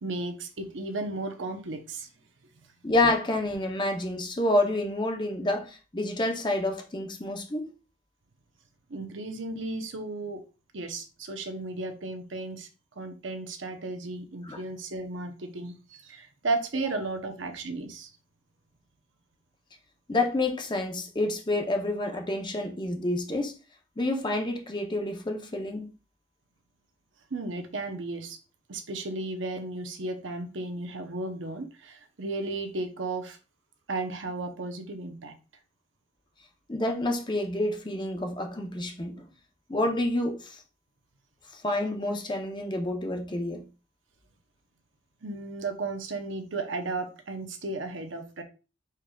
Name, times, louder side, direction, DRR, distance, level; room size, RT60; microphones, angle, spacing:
voice 1, 0.0-2.1 2.5-2.6 8.9-10.4 10.7-12.7 13.0-18.1 27.3-28.4 28.7-33.4 33.9-35.3 45.2-48.4, right 2 dB, 80° right, 0.9 m, -34 dB
voice 2, 2.8-7.7 14.4-14.6 20.1-23.6 24.0-25.9 36.7-39.3 39.7-40.6 41.5-43.6, left 2 dB, 25° left, 0.8 m, -28 dB
4.9 x 4.5 x 2.3 m
head